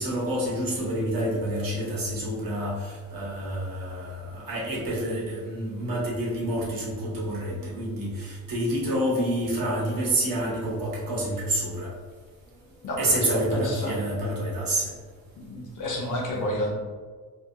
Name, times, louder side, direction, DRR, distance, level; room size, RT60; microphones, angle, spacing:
voice 1, 0.0-11.9 13.0-14.9, right 1 dB, 50° right, -5 dB, 1.1 m, -28 dB
voice 2, 12.8-13.9 15.4-16.8, left 1 dB, 45° left, -1 dB, 0.8 m, -30 dB
2.7 x 2.3 x 2.6 m, 1.5 s
supercardioid pair, 60°, 45 cm